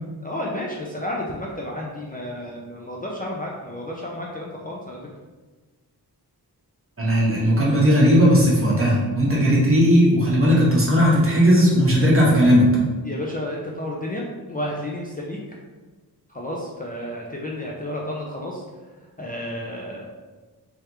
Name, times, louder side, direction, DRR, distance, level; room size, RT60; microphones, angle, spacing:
voice 1, 0.2-5.0 13.0-15.4 16.3-18.6 19.2-20.1, left 1 dB, 20° left, -3 dB, 0.5 m, -31 dB
voice 2, 7.0-12.7, equal, 35° right, -5 dB, 1.2 m, -17 dB
3.5 x 3.3 x 2.9 m, 1.3 s
wide cardioid pair, 100°, 40 cm